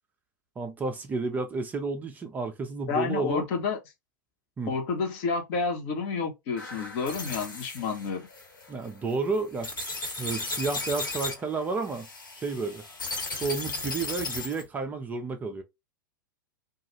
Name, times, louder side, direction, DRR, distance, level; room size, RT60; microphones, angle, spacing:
voice 1, 0.6-3.4 4.6-4.7 8.7-12.1 12.3-12.8 13.3-15.6, right 4 dB, 15° right, 0.4 m, -31 dB
voice 2, 2.9-3.8 4.7-8.3, left 5 dB, 40° left, 0.9 m, -29 dB
sound 1, 6.6-14.7, left 3 dB, 70° left, 1.3 m, -36 dB
2.3 x 2.3 x 3.0 m
figure-of-eight pair, 100°, 11 cm